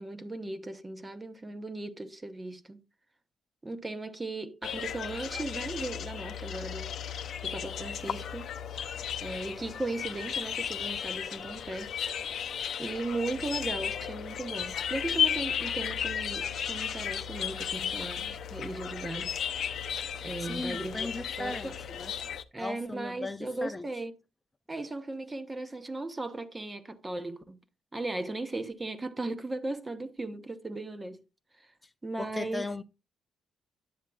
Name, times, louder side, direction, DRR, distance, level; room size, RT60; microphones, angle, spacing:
voice 1, 0.0-2.8 3.6-7.0 7.4-8.5 9.2-11.9 12.3-12.4 12.8-19.4 20.2-21.1 21.4-21.7 22.5-24.1 24.7-27.6 27.9-31.2 31.6-31.7 32.0-32.6, right 2 dB, 20° right, 0.9 m, -37 dB
sound 1, 4.6-22.4, left 8 dB, 65° left, 0.5 m, -34 dB
voice 2, 20.4-22.1 22.6-23.9 31.8-31.9 32.2-32.8, left 2 dB, 15° left, 0.5 m, -37 dB
10.5 x 7.3 x 2.3 m
cardioid pair, 90°, 0 cm